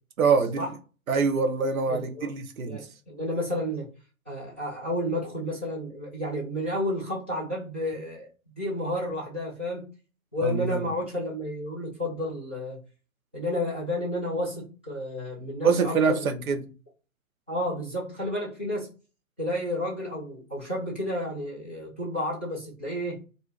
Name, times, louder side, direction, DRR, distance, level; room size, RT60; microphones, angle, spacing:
voice 1, 0.2-0.7 1.1-2.8 10.4-10.7 15.6-16.1 16.5-16.6, right 5 dB, 85° right, 0.5 m, -24 dB
voice 2, 1.9-2.3 2.6-3.9 4.3-8.3 8.6-9.9 10.3-12.8 13.3-16.5 17.5-18.9 19.4-23.2, left 1 dB, 10° right, 0.3 m, -31 dB
2.5 x 2.1 x 3.6 m
figure-of-eight pair, 115°, 41 cm